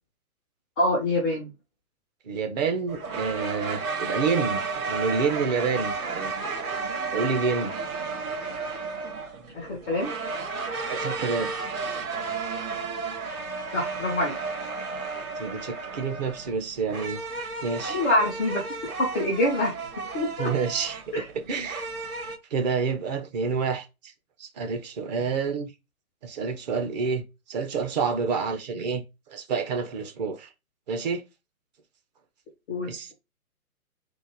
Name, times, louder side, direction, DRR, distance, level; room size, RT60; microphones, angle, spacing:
voice 1, 0.8-1.5 9.5-10.1 13.7-14.4 17.8-18.6 19.0-20.5 21.1-21.2 32.7-33.1, left 1 dB, 5° left, 0.5 m, -26 dB
voice 2, 2.2-6.3 7.1-7.7 10.9-11.5 15.4-17.2 17.6-18.0 20.4-21.9 22.5-24.1 24.4-25.7 26.2-27.2 27.5-30.5 30.9-31.2 32.9-33.1, right 5 dB, 30° right, 1.0 m, -28 dB
sound 1, 2.9-22.4, right 4 dB, 70° right, 2.7 m, -33 dB
4.4 x 2.6 x 4.7 m
hypercardioid pair, 150°, 44 cm